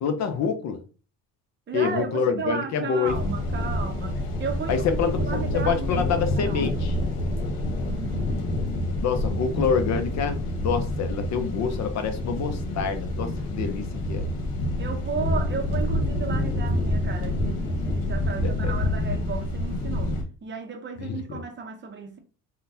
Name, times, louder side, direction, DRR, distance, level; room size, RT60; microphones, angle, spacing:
voice 1, 0.0-0.8 1.7-3.2 4.7-5.3 5.5-6.9 9.0-14.3 18.4-18.7 21.0-21.2, left 6 dB, 50° left, 0.6 m, -27 dB
voice 2, 1.7-6.9 7.8-8.5 14.8-22.2, right 5 dB, 30° right, 0.6 m, -34 dB
sound 1, 3.0-20.2, left 1 dB, 85° left, 1.1 m, -27 dB
3.8 x 2.2 x 2.6 m
cardioid pair, 120°, 35 cm